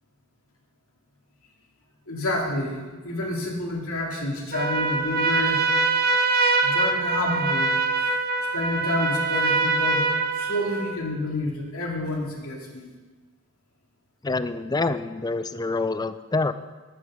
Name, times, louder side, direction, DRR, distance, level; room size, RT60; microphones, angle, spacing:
voice 1, 2.1-5.6 6.6-8.1 8.5-10.1 10.4-12.9, left 1 dB, 85° left, -1 dB, 2.5 m, -29 dB
Trumpet, 4.5-11.0, right 3 dB, 45° right, 0.9 m, -23 dB
voice 2, 14.2-16.5, left 3 dB, 20° left, 13 dB, 0.4 m, -26 dB
11.0 x 8.7 x 6.4 m, 1.3 s
head